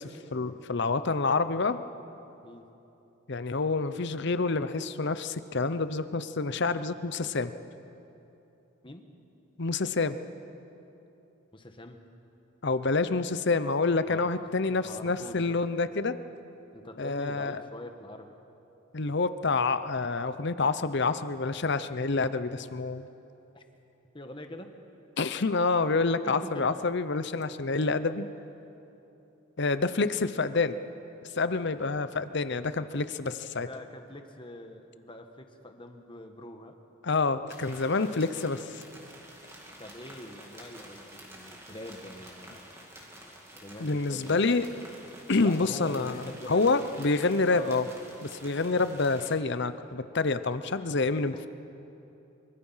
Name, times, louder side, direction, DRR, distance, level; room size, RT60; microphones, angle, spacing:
voice 1, 0.0-1.8 3.3-7.5 9.6-10.2 12.6-16.2 17.0-17.6 18.9-23.1 25.2-28.3 29.6-30.7 31.4-33.7 37.0-38.8 43.8-44.7 45.3-47.9 48.2-51.3, left 3 dB, 55° left, 12 dB, 0.8 m, -28 dB
voice 2, 11.5-12.0 14.0-14.3 14.7-15.6 16.7-18.3 23.5-23.6 24.1-24.8 26.2-26.8 33.6-36.7 37.9-38.1 39.8-42.7 43.5-44.6 45.4-46.8 47.5-47.7 51.3-51.5, left 1 dB, 25° left, 5 dB, 1.4 m, -44 dB
sound 1, 37.5-49.4, right 1 dB, 15° right, 2.6 m, -49 dB
25.0 x 23.5 x 5.7 m, 2.9 s
head